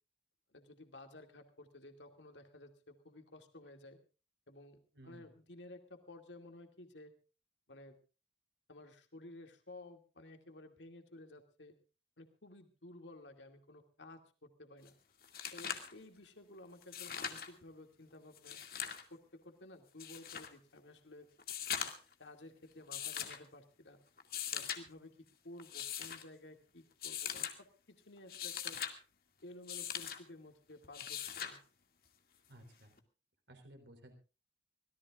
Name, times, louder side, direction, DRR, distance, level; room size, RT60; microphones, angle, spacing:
voice 1, 0.5-4.0 4.5-4.8 5.0-7.1 7.7-8.0 8.7-11.7 12.2-14.9 15.5-18.6 19.1-21.3 22.2-24.0 24.5-28.8 29.4-31.6, left 1 dB, 90° left, 5 dB, 2.4 m, -54 dB
voice 2, 4.9-5.3 32.5-33.0 33.5-34.1, right 1 dB, 80° right, 6 dB, 4.1 m, -56 dB
sound 1, 14.9-15.0 15.2-15.9 16.8-17.5 18.3-19.0 20.0-20.5 21.4-22.1 22.9-23.4 24.2-24.8 25.6-26.2 27.0-27.5 28.2-28.9 29.7-30.2 30.9-31.6 33.0-33.1, left 8 dB, 55° left, 2.2 m, -41 dB
25.0 x 18.0 x 2.5 m, 0.34 s
head